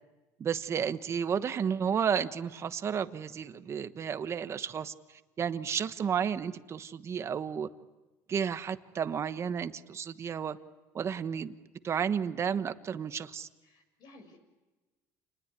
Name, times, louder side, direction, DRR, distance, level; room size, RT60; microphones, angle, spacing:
voice 1, 0.4-4.9 5.4-7.7 8.3-10.6 10.9-11.6 11.8-13.5, right 7 dB, 35° right, 11 dB, 1.2 m, -32 dB
voice 2, 13.6-14.4, left 2 dB, 60° left, 7 dB, 6.7 m, -55 dB
29.0 x 20.5 x 9.8 m, 1.2 s
cardioid pair, 115°, 8 cm